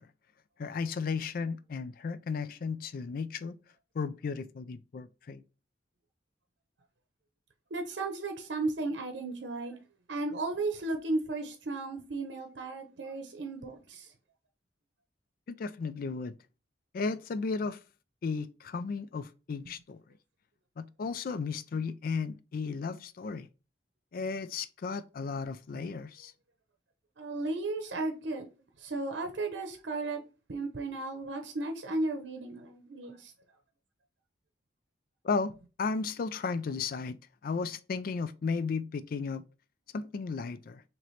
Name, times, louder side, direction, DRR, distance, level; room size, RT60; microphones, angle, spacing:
voice 1, 0.6-3.5 3.9-5.4 15.5-16.4 16.9-17.8 18.2-20.0 20.8-23.5 24.1-26.3 35.2-37.2 37.4-39.4 39.9-40.8, left 4 dB, 50° left, 0.4 m, -34 dB
voice 2, 7.7-9.8 10.1-14.1 27.2-28.5 28.8-30.2 30.5-33.3, right 2 dB, 85° right, 0.7 m, -35 dB
3.1 x 2.9 x 4.0 m
head